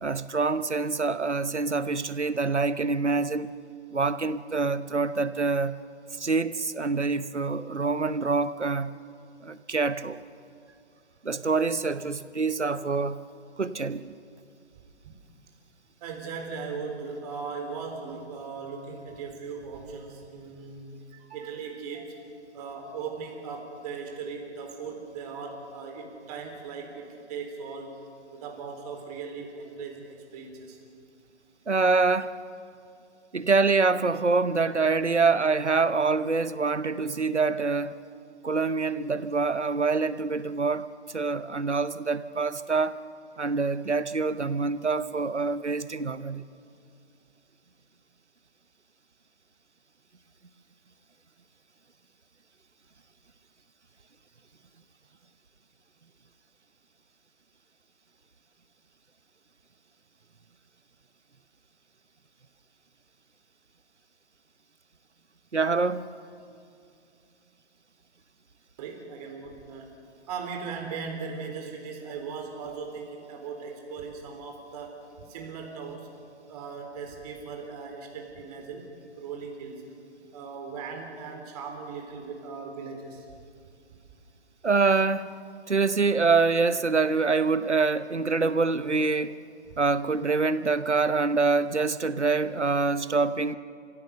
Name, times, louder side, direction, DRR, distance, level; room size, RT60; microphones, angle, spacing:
voice 1, 0.0-3.5 3.9-5.8 6.2-8.9 9.4-10.2 11.2-13.2 13.6-14.1 31.7-32.3 33.3-37.9 38.4-40.9 41.1-43.0 43.4-46.4 65.5-66.1 84.6-85.4 85.7-89.4 89.8-93.5, right 4 dB, 90° right, 15 dB, 1.0 m, -25 dB
voice 2, 16.0-22.2 22.5-28.0 28.3-30.8 68.8-69.9 70.3-75.0 75.3-76.1 76.5-78.9 79.1-79.9 80.3-83.3, right 5 dB, 35° right, 2 dB, 3.8 m, -38 dB
29.5 x 16.0 x 6.9 m, 2.5 s
figure-of-eight pair, 130°, 34 cm